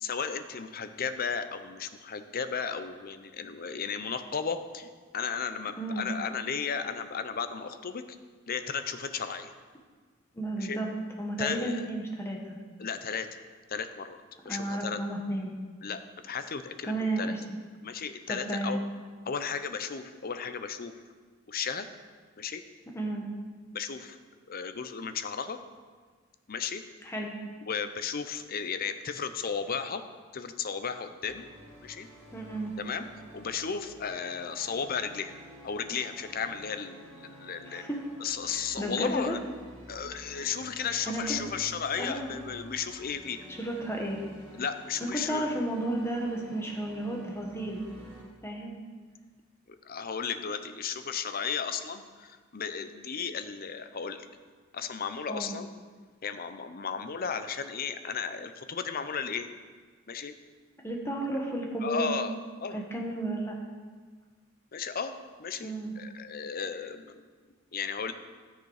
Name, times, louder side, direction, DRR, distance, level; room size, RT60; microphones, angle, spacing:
voice 1, 0.0-8.0 8.5-9.5 10.6-10.8 11.4-11.9 12.8-13.4 13.7-14.2 14.4-15.0 15.8-17.3 17.8-18.8 19.3-20.9 21.5-21.9 22.4-22.6 23.7-24.2 24.5-25.6 26.5-26.8 27.7-30.0 30.3-31.4 31.8-32.1 32.8-33.1 33.3-35.3 35.6-37.8 38.2-39.4 39.9-43.4 44.6-45.5 49.7-54.3 54.7-55.7 56.2-59.5 60.1-60.3 61.8-62.3 62.6-62.8 64.7-65.1 65.4-67.2 67.7-68.1, left 6 dB, 45° left, 10 dB, 0.7 m, -34 dB
voice 2, 10.3-10.9 11.2-12.6 14.4-15.5 16.8-17.4 18.3-18.8 22.9-23.3 27.0-27.3 32.3-32.7 37.7-38.0 38.5-39.4 41.1-41.2 42.0-42.3 43.6-44.2 45.0-47.8 48.4-48.8 55.3-55.5 60.8-62.2 62.7-63.6 65.6-65.9, right 1 dB, 15° left, 0 dB, 1.5 m, -33 dB
sound 1, 31.2-48.2, right 1 dB, 35° right, 3.2 m, -51 dB
13.5 x 6.7 x 4.9 m, 1.5 s
head